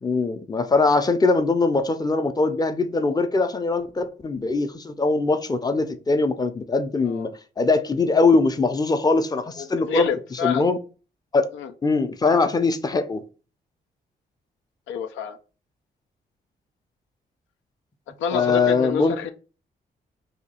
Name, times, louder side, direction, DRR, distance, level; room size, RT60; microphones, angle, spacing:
voice 1, 0.0-7.3 7.6-10.8 11.3-11.5 11.8-13.2 18.3-19.2, left 3 dB, 20° left, 0.5 m, -22 dB
voice 2, 9.6-10.7 11.5-11.7 14.9-15.4 18.2-19.3, left 7 dB, 85° left, 0.4 m, -28 dB
2.8 x 2.3 x 4.2 m
supercardioid pair, 55°, 19 cm